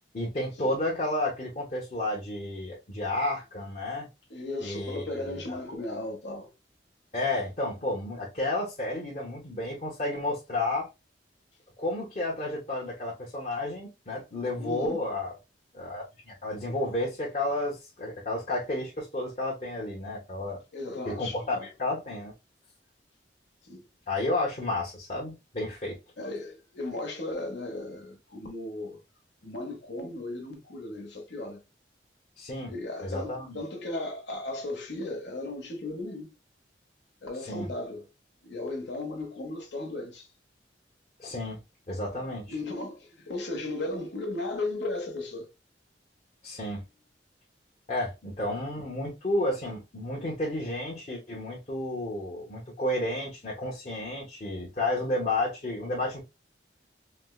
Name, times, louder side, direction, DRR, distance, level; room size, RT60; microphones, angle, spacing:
voice 1, 0.1-4.1 4.6-5.4 7.1-10.9 11.8-15.3 15.7-20.6 21.1-22.3 24.1-26.0 32.4-32.7 33.0-33.6 37.4-37.7 41.2-41.6 41.9-42.6 46.4-46.8 47.9-56.2, left 1 dB, 40° left, 0.9 m, -31 dB
voice 2, 4.3-6.5 14.6-15.0 20.7-21.7 23.6-23.8 26.2-29.0 29.4-31.6 32.7-36.3 37.2-38.0 38.4-40.3 42.5-45.5, left 2 dB, 75° left, 1.0 m, -36 dB
4.3 x 2.1 x 2.3 m
head